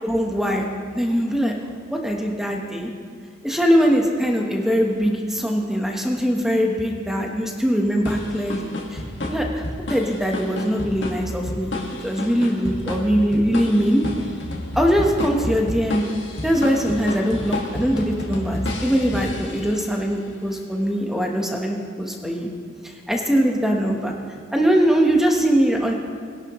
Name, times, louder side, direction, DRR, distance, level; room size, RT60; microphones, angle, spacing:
voice 1, 0.0-0.7 0.9-1.5 1.9-2.9 3.4-9.0 9.3-9.6 9.9-11.7 12.0-14.0 14.7-16.0 16.4-22.5 22.8-24.1 24.5-25.9, equal, ahead, 1 dB, 1.1 m, -21 dB
sound 1, 8.1-20.0, left 1 dB, 65° left, 1.7 m, -30 dB
21.5 x 11.0 x 3.1 m, 2.1 s
head